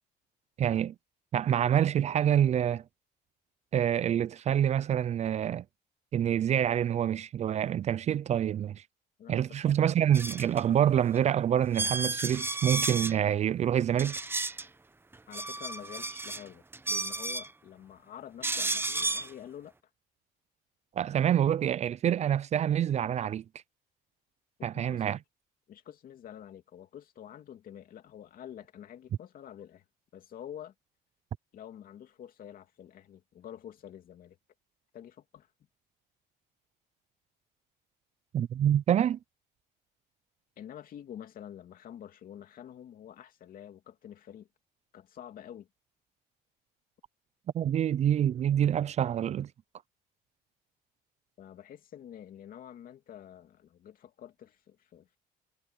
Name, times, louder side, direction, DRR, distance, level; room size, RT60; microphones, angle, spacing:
voice 1, 0.6-0.9 1.3-2.8 3.7-5.6 6.1-8.8 9.3-14.2 21.0-23.4 24.6-25.2 38.3-39.2 47.5-49.5, right 10 dB, 40° right, 0.4 m, -26 dB
voice 2, 9.2-9.8 15.3-19.7 24.7-25.2 25.7-29.8 30.1-30.7 31.5-34.4 34.9-35.5 40.6-44.5 44.9-45.7 51.4-55.2, left 10 dB, 55° left, 2.7 m, -48 dB
sound 1, 10.1-10.6 11.2-11.3 11.7-13.2 14.0-14.7 15.1-16.4 16.7-17.5 18.4-19.3, right 3 dB, 15° right, 0.9 m, -32 dB
cardioid pair, 110°, 17 cm